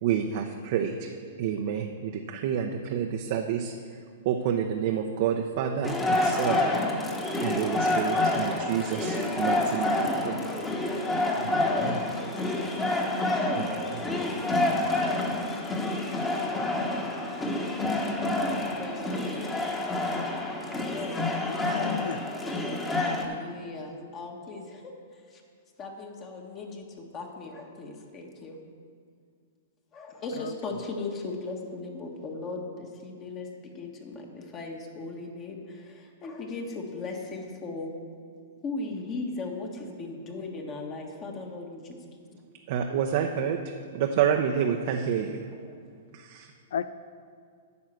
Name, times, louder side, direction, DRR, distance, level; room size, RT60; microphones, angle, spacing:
voice 1, 0.0-3.7 4.2-6.8 7.4-10.4 11.4-12.2 13.5-14.2 14.5-14.9 42.7-45.5 46.1-46.5, right 8 dB, 55° right, 3 dB, 0.7 m, -29 dB
sound 1, 5.8-23.2, left 2 dB, 15° left, 1.3 m, -28 dB
voice 2, 18.8-19.5 21.6-21.9 23.0-25.4 25.8-28.6 29.9-37.9 38.6-42.2 45.7-45.8, left 3 dB, 30° left, 1 dB, 1.4 m, -38 dB
voice 3, 21.4-22.2 30.4-30.5 46.7-46.9, left 8 dB, 70° left, 13 dB, 0.3 m, -34 dB
9.5 x 5.7 x 7.6 m, 2.2 s
hypercardioid pair, 125°, 0 cm